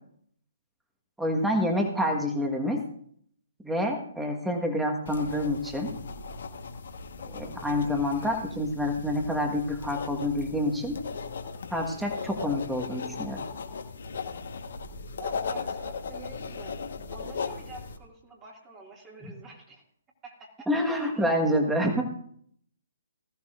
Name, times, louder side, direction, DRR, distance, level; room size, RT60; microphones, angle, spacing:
voice 1, 1.2-2.8 3.6-5.9 7.3-11.0 11.7-13.4 19.2-19.3 20.7-22.1, left 1 dB, 5° right, 2 dB, 1.5 m, -27 dB
sound 1, 5.1-18.0, left 5 dB, 60° left, 1.3 m, -37 dB
voice 2, 15.2-16.8 17.1-19.8 20.2-20.7, right 3 dB, 20° right, -1 dB, 2.3 m, -46 dB
19.0 x 14.0 x 2.6 m, 0.64 s
figure-of-eight pair, 135°, 0 cm